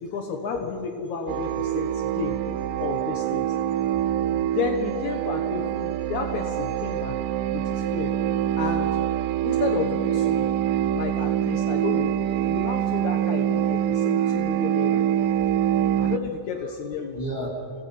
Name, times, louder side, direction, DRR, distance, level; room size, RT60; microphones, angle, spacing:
voice 1, 0.0-2.4 2.8-3.6 4.5-7.2 7.5-8.2 8.6-8.9 9.4-10.5 10.9-12.2 12.5-15.0 16.0-17.2, left 5 dB, 70° left, 4 dB, 2.6 m, -31 dB
sound 1, 1.3-16.2, right 11 dB, 90° right, 2.2 m, -25 dB
voice 2, 4.0-4.5 9.5-9.6 14.1-14.3 15.3-16.1 17.1-17.7, right 1 dB, 15° left, -2 dB, 4.5 m, -36 dB
27.0 x 18.0 x 5.9 m, 2.5 s
omnidirectional pair, 3.6 m